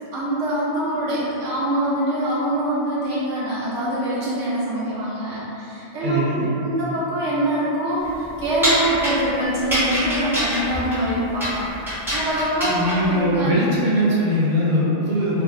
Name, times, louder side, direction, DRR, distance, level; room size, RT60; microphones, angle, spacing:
voice 1, 0.1-11.7 12.1-13.5, right 1 dB, 75° right, -9 dB, 1.1 m, -24 dB
voice 2, 6.0-6.5 12.6-15.4, equal, 50° right, -7 dB, 0.7 m, -21 dB
sound 1, 8.0-13.2, equal, ahead, 1.0 m, -25 dB
3.1 x 2.2 x 2.4 m, 3.0 s
omnidirectional pair, 1.2 m